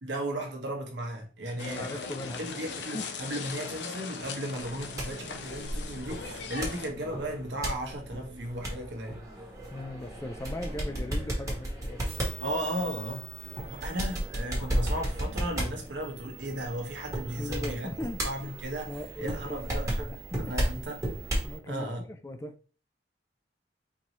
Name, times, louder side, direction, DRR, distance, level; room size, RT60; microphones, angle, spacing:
voice 1, 0.0-2.1 2.4-9.2 12.4-13.3 13.6-17.9 18.2-18.9 19.2-20.1 20.4-21.0 21.7-22.0, right 1 dB, 85° right, 1.1 m, -35 dB
sound 1, 1.6-6.9, left 5 dB, 75° left, 0.6 m, -39 dB
voice 2, 1.6-2.5 2.9-3.0 9.7-12.0 17.4-18.2 18.9-20.2 21.4-22.6, left 1 dB, 15° left, 0.3 m, -38 dB
sound 2, 4.6-21.6, right 1 dB, 20° right, 1.3 m, -35 dB
sound 3, 12.0-21.6, right 13 dB, 35° right, 0.5 m, -48 dB
4.5 x 2.7 x 3.0 m
head